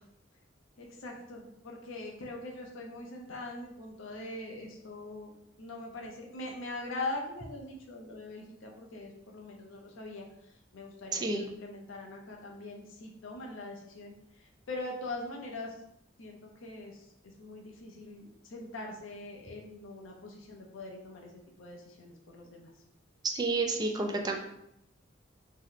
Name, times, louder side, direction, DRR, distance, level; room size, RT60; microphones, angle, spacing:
voice 1, 0.8-5.3 5.6-10.3 10.7-14.1 14.7-15.7 16.2-17.0 17.4-21.3 21.6-22.7, left 2 dB, 80° left, 1 dB, 0.7 m, -42 dB
voice 2, 11.1-11.4 23.3-24.3, right 3 dB, 20° right, 3 dB, 0.3 m, -30 dB
2.8 x 2.1 x 3.9 m, 0.79 s
head